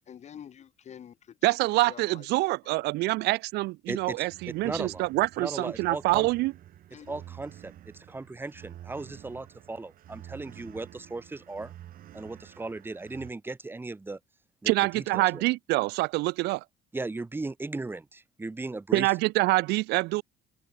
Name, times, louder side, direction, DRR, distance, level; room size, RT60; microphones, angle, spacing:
voice 1, 0.0-1.3 1.7-2.5 6.9-7.2, left 9 dB, 40° left, 0.9 m, -47 dB
voice 2, 1.4-6.5 14.7-16.6 18.9-20.2, right 21 dB, 80° right, 0.4 m, -26 dB
voice 3, 3.9-4.3 4.6-5.1 5.4-6.3 7.1-11.7 12.1-14.2 14.6-15.4 16.9-19.1, right 3 dB, 10° right, 0.9 m, -37 dB
sound 1, 3.9-13.3, right 12 dB, 60° right, 1.1 m, -49 dB
cardioid pair, 110°, 17 cm